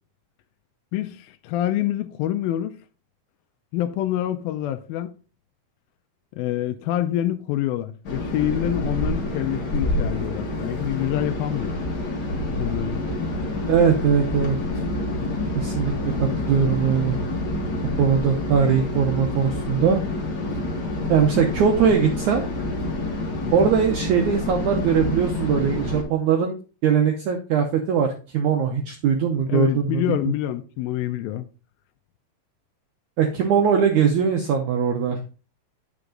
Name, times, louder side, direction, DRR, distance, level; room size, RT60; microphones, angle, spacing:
voice 1, 0.9-2.8 3.7-5.1 6.4-11.7 12.6-13.0 23.4-23.7 29.5-31.5, left 12 dB, 80° left, 2.3 m, -26 dB
sound 1, 8.0-26.0, left 2 dB, 35° left, 2.0 m, -28 dB
voice 2, 13.7-14.6 15.5-17.2 18.0-20.0 21.1-22.5 23.5-26.5 26.8-30.3 33.2-35.2, right 7 dB, 80° right, 1.7 m, -21 dB
9.4 x 6.0 x 3.8 m
omnidirectional pair, 4.5 m